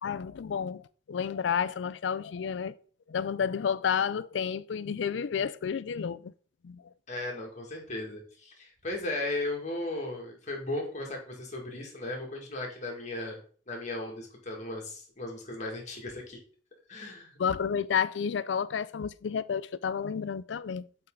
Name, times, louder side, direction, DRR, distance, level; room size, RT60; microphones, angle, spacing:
voice 1, 0.0-2.7 3.1-6.3 6.6-6.8 17.4-20.9, left 7 dB, 85° left, 0.4 m, -31 dB
voice 2, 7.1-13.4 13.7-16.4 16.9-17.4, left 2 dB, 40° left, 2.0 m, -36 dB
7.5 x 4.4 x 3.8 m
head